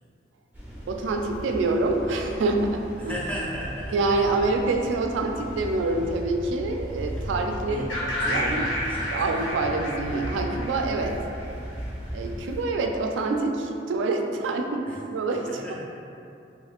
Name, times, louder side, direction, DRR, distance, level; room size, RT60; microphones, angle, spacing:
sound 1, 0.5-12.6, equal, 10° right, 0.9 m, -37 dB
voice 1, 0.9-3.2 3.9-7.9 8.3-8.7 9.1-11.2 12.1-15.7, right 3 dB, 75° right, 3 dB, 0.3 m, -26 dB
voice 2, 3.0-3.9 7.6-7.9 8.2-9.1 14.8-15.0 15.4-15.7, equal, 5° left, -7 dB, 0.5 m, -35 dB
sound 2, 7.9-11.8, left 1 dB, 80° left, 0.9 m, -31 dB
3.4 x 3.1 x 2.3 m, 2.7 s
head